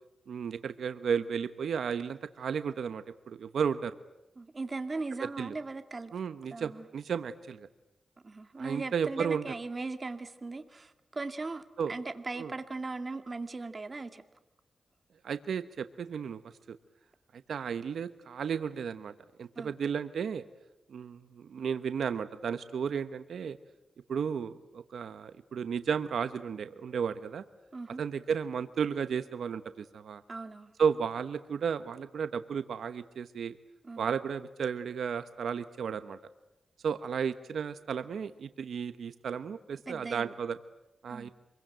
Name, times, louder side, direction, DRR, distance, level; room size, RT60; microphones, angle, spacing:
voice 1, 0.3-3.9 5.2-5.5 6.1-7.7 8.6-9.4 11.8-11.9 12.4-12.5 15.2-16.4 16.7-16.8 17.3-19.1 19.4-20.4 20.9-23.6 24.1-27.4 28.0-30.2 30.8-33.6 34.0-36.2 36.8-40.6 41.0-41.3, right 7 dB, 85° right, 12 dB, 1.0 m, -33 dB
voice 2, 4.4-6.1 6.5-6.9 8.2-14.2 19.6-19.8 27.7-28.0 30.3-30.7 33.8-34.1 39.9-40.4 41.1-41.3, right 3 dB, 35° right, 9 dB, 2.1 m, -39 dB
26.5 x 22.5 x 9.1 m, 0.95 s
wide cardioid pair, 90°, 0 cm